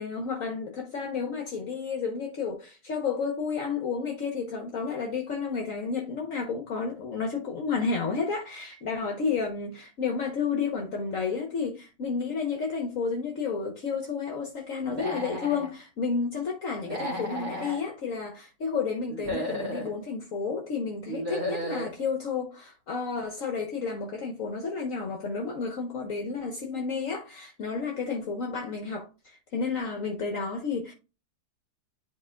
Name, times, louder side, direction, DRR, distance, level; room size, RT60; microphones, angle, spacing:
voice 1, 0.0-30.9, left 5 dB, 60° left, 1.3 m, -31 dB
Human voice / Animal, 14.9-15.7 16.8-17.8 19.1-19.9 21.1-21.9, equal, 60° right, 2.3 m, -33 dB
10.5 x 4.4 x 2.2 m
omnidirectional pair, 1.7 m